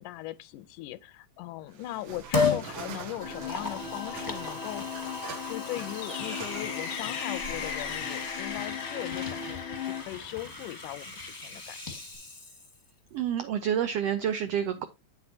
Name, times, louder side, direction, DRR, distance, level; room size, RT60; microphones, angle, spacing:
voice 1, 0.0-4.8 5.2-12.0, left 16 dB, 80° left, 2.1 m, -39 dB
sound 1, 1.7-12.2, right 5 dB, 60° right, 1.3 m, -46 dB
Liquid, 2.3-2.7 3.3-12.9 13.2-13.3, left 4 dB, 20° left, 1.0 m, -35 dB
sound 2, 3.2-10.0, left 7 dB, 60° left, 1.4 m, -36 dB
voice 2, 13.1-14.8, right 9 dB, 85° right, 1.4 m, -28 dB
8.9 x 7.9 x 2.8 m
omnidirectional pair, 3.6 m